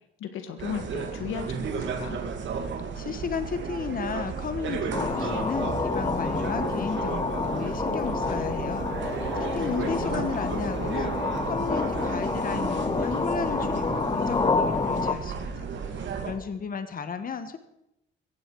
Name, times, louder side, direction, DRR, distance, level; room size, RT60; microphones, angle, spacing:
voice 1, 0.2-2.2 9.6-10.4, left 8 dB, 90° left, 8 dB, 1.8 m, -36 dB
sound 1, 0.6-16.3, right 5 dB, 70° right, 2.4 m, -33 dB
voice 2, 2.9-15.7 15.9-17.6, left 6 dB, 45° left, 10 dB, 1.5 m, -34 dB
sound 2, 4.9-15.1, left 4 dB, 25° left, 1.1 m, -28 dB
16.5 x 15.0 x 4.8 m, 0.82 s
cardioid pair, 90°, 20 cm